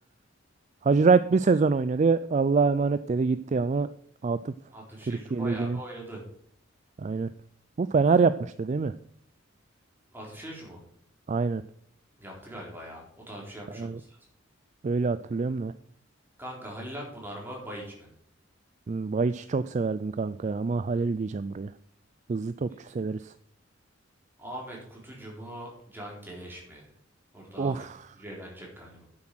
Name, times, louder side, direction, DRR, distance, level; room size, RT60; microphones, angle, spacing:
voice 1, 0.8-3.9 4.2-4.5 5.1-5.8 7.0-7.3 7.8-8.9 11.3-11.6 13.7-14.0 14.8-15.7 18.9-21.7 22.3-23.3 27.6-28.0, right 4 dB, 35° right, 14 dB, 0.3 m, -25 dB
voice 2, 4.7-6.2 10.1-10.8 12.2-14.2 16.4-18.1 24.4-26.9 27.3-27.8 28.1-29.0, right 1 dB, 10° right, -2 dB, 3.9 m, -41 dB
9.8 x 7.6 x 6.2 m, 0.65 s
head